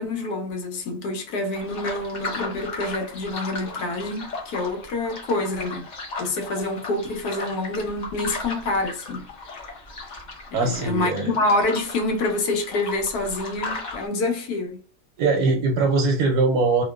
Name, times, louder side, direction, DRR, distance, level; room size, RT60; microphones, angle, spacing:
voice 1, 0.0-5.9 6.2-9.2 10.6-14.8, left 2 dB, 80° left, 1.2 m, -27 dB
sound 1, 1.5-14.1, left 3 dB, 60° left, 0.5 m, -36 dB
voice 2, 10.5-11.3 15.2-16.8, right 3 dB, 85° right, 1.1 m, -21 dB
2.8 x 2.1 x 2.2 m
omnidirectional pair, 1.6 m